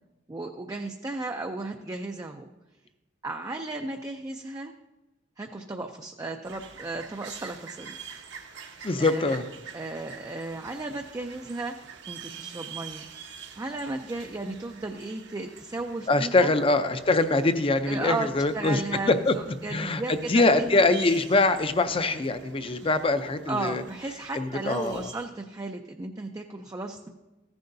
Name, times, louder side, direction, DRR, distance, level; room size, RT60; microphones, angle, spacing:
voice 1, 0.3-2.5 3.2-4.7 5.4-8.0 9.0-9.4 9.7-13.1 13.6-16.5 17.9-18.3 18.5-20.7 22.8-22.9 23.5-27.1, right 2 dB, 20° right, 4 dB, 0.4 m, -35 dB
sound 1, 6.4-25.3, right 6 dB, 65° right, 1.0 m, -47 dB
voice 2, 8.8-9.5 16.1-18.8 19.1-19.3 19.7-23.8 24.3-25.1, left 2 dB, 30° left, 10 dB, 0.6 m, -23 dB
15.0 x 10.5 x 2.7 m, 1.1 s
head